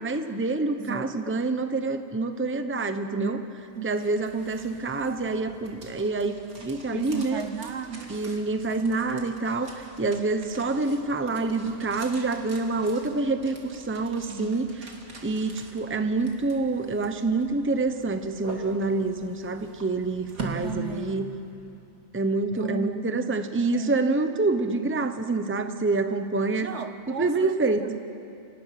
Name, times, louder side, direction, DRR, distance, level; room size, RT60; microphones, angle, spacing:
voice 1, 0.0-3.4 3.8-7.4 8.1-14.7 15.2-21.3 22.1-26.7 27.1-27.9, right 3 dB, 10° right, 8 dB, 0.9 m, -27 dB
voice 2, 0.7-1.4 3.1-3.5 3.7-3.9 6.9-8.2 14.2-14.6 20.5-21.3 22.5-23.0 23.7-24.0 26.6-28.0, right 7 dB, 60° right, 10 dB, 1.1 m, -35 dB
sound 1, 3.6-21.7, right 3 dB, 85° right, 2.9 m, -44 dB
29.5 x 25.5 x 6.0 m, 2.7 s
omnidirectional pair, 1.4 m